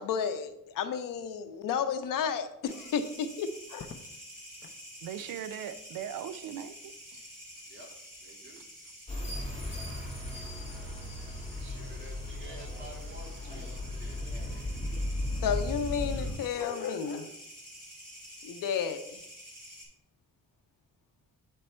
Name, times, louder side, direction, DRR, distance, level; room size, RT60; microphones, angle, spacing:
voice 1, 0.0-3.9 15.4-17.3 18.4-19.2, left 7 dB, 80° left, 9 dB, 0.7 m, -32 dB
sound 1, 2.6-19.9, equal, 10° right, 2.5 m, -49 dB
Crackle, 3.7-4.9 6.5-7.0, left 6 dB, 35° left, 0.5 m, -51 dB
voice 2, 5.0-7.6 8.6-8.7 10.3-10.4, right 9 dB, 80° right, 10 dB, 0.5 m, -40 dB
voice 3, 8.2-8.7 11.5-14.8 16.8-17.2, right 2 dB, 35° right, -2 dB, 1.9 m, -52 dB
sound 2, 9.1-16.3, left 1 dB, 20° left, 1.9 m, -36 dB
8.4 x 3.3 x 4.3 m, 0.79 s
cardioid pair, 155°, 33 cm